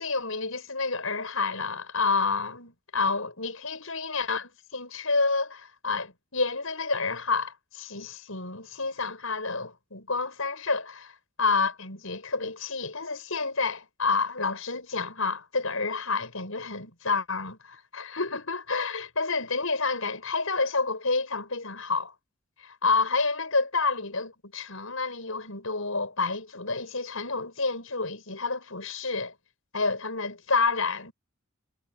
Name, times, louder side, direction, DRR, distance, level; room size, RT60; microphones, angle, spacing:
voice 1, 0.0-22.1 22.6-29.3 29.7-31.1, left 4 dB, 75° left, 6.0 m, -29 dB
head